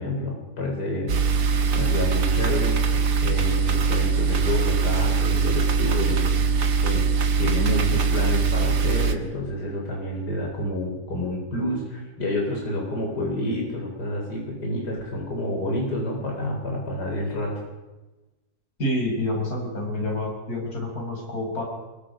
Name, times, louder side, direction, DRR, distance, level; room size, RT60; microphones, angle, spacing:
voice 1, 0.0-6.4 6.8-7.1 7.4-17.5, left 1 dB, 90° left, -1 dB, 4.6 m, -29 dB
sound 1, 1.1-9.2, right 5 dB, 90° right, 2.0 m, -22 dB
voice 2, 18.8-21.6, left 1 dB, 65° left, 0 dB, 5.9 m, -28 dB
24.5 x 22.5 x 5.1 m, 1.1 s
omnidirectional pair, 1.7 m